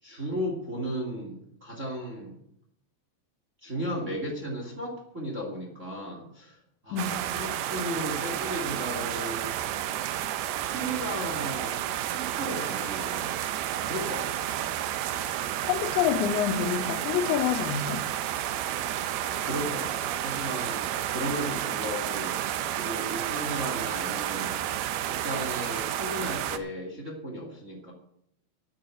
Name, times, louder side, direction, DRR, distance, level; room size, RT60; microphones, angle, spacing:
voice 1, 0.0-2.4 3.6-9.5 10.6-11.8 12.1-13.3 13.8-14.6 19.4-22.4 22.8-24.6 25.0-27.9, equal, 25° right, 1.9 m, -35 dB
voice 2, 6.9-7.2 15.6-18.0, left 9 dB, 85° left, 3.1 m, -27 dB
sound 1, 7.0-26.6, right 12 dB, 80° right, 2.4 m, -31 dB
10.0 x 8.6 x 7.9 m
omnidirectional pair, 5.1 m